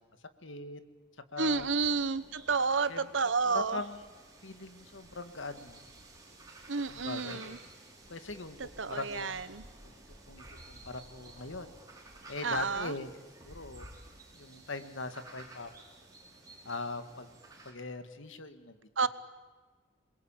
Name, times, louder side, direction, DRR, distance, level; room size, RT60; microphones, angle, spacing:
voice 1, 0.4-0.8 1.3-1.7 2.9-3.1 3.5-4.0 4.4-5.8 6.9-7.6 8.1-9.4 9.8-9.9 10.3-11.7 12.3-13.1 13.4-13.9 14.4-15.7 16.7-17.4 17.7-18.8, left 3 dB, 85° left, 9 dB, 1.9 m, -41 dB
sound 1, 1.4-17.7, right 2 dB, 20° right, 5.2 m, -53 dB
voice 2, 1.4-3.8 6.7-7.6 8.8-9.6 12.4-12.9 19.0-19.1, right 4 dB, 80° right, 14 dB, 1.1 m, -30 dB
27.5 x 22.0 x 8.9 m, 1.3 s
head